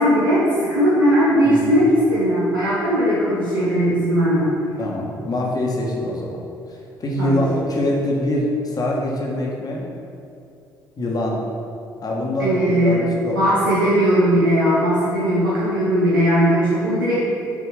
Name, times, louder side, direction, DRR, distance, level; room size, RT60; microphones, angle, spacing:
voice 1, 0.0-4.5 7.2-7.4 12.4-13.0 13.3-17.2, equal, 85° right, -8 dB, 0.9 m, -18 dB
voice 2, 1.4-1.8 4.8-6.4 7.0-9.9 11.0-11.4 12.0-13.6, left 1 dB, 35° left, -2 dB, 1.4 m, -24 dB
6.0 x 4.3 x 5.0 m, 2.7 s
figure-of-eight pair, 50°, 11 cm